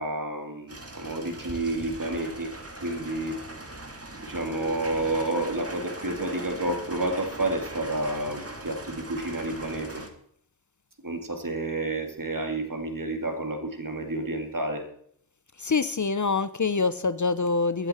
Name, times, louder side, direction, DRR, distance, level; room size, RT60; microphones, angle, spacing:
voice 1, 0.0-2.5 2.8-3.4 4.2-10.0 11.0-14.8, right 2 dB, 50° right, 4 dB, 2.4 m, -30 dB
sound 1, 0.7-10.1, right 2 dB, 35° right, 2.0 m, -40 dB
voice 2, 15.6-17.9, left 4 dB, 45° left, 14 dB, 0.7 m, -25 dB
16.5 x 12.5 x 4.3 m, 0.65 s
wide cardioid pair, 50°, 42 cm